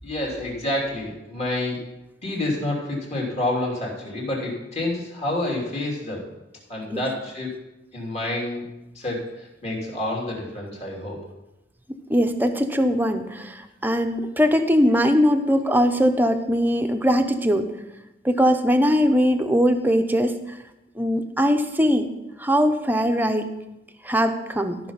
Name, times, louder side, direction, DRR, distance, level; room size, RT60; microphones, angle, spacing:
voice 1, 0.0-1.8 2.2-6.2 6.7-7.5 7.9-8.6 8.9-11.2, left 1 dB, 40° left, -3 dB, 3.1 m, -28 dB
voice 2, 12.1-17.7 18.2-20.3 21.0-22.1 22.4-23.5 24.0-24.8, equal, 10° right, 6 dB, 0.8 m, -21 dB
13.5 x 6.0 x 5.7 m, 0.96 s
head